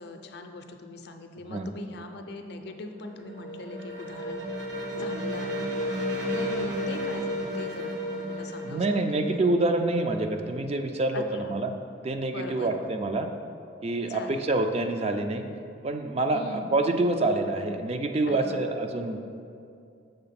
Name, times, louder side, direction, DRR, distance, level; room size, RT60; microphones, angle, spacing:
voice 1, 0.0-4.4 4.9-5.7 6.3-9.4 11.1-11.5 12.3-12.9 14.1-14.5 16.3-16.7 18.3-18.7, left 2 dB, 60° left, 6 dB, 0.5 m, -41 dB
sound 1, 2.8-10.4, equal, 85° right, 1.0 m, -33 dB
voice 2, 8.7-11.7 12.0-13.3 13.8-15.4 15.8-19.2, right 2 dB, 35° right, 6 dB, 0.3 m, -27 dB
6.7 x 3.8 x 5.7 m, 2.4 s
head